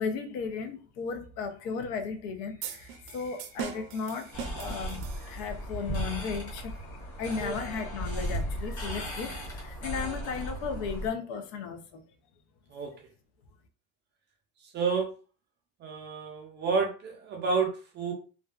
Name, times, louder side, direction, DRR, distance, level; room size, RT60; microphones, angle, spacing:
voice 1, 0.0-2.8 3.1-4.3 4.6-6.7 7.2-9.4 9.8-11.8, left 5 dB, 80° left, 0.6 m, -35 dB
sound 1, 2.6-5.7, right 8 dB, 80° right, 0.5 m, -41 dB
sound 2, 4.3-11.1, equal, 35° left, 1.2 m, -36 dB
voice 2, 14.7-15.1 15.8-18.1, right 5 dB, 30° right, 0.4 m, -30 dB
2.5 x 2.2 x 2.3 m
cardioid pair, 165°, 38 cm